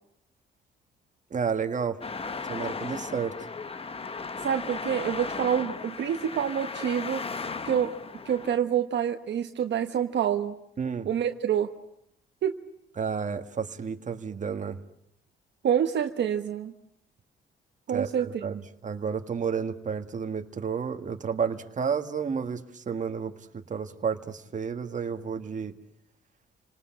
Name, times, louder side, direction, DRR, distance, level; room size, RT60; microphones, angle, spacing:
voice 1, 1.3-2.0 2.5-3.3 10.8-11.1 13.0-14.8 17.9-25.7, right 6 dB, 40° right, 7 dB, 1.8 m, -31 dB
Traffic noise roadway noise, 2.0-8.6, left 4 dB, 30° left, 1.2 m, -36 dB
voice 2, 4.4-7.2 7.6-8.0 8.2-10.6 11.0-11.7 12.4-12.6 15.6-16.7 17.9-18.5, right 9 dB, 65° right, 6 dB, 1.3 m, -27 dB
30.0 x 19.5 x 8.9 m, 0.76 s
cardioid pair, 90°, 20 cm